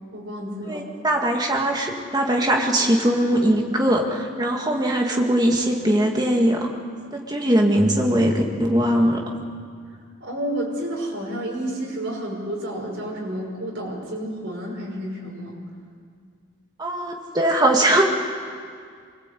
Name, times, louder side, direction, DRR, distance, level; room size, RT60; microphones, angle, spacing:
voice 1, 0.1-0.9 10.2-15.6, right 1 dB, 55° right, -2 dB, 6.0 m, -30 dB
voice 2, 0.7-6.7 7.1-9.2 16.8-18.0, right 1 dB, 20° right, 1 dB, 2.1 m, -21 dB
24.5 x 21.0 x 8.4 m, 2.1 s
head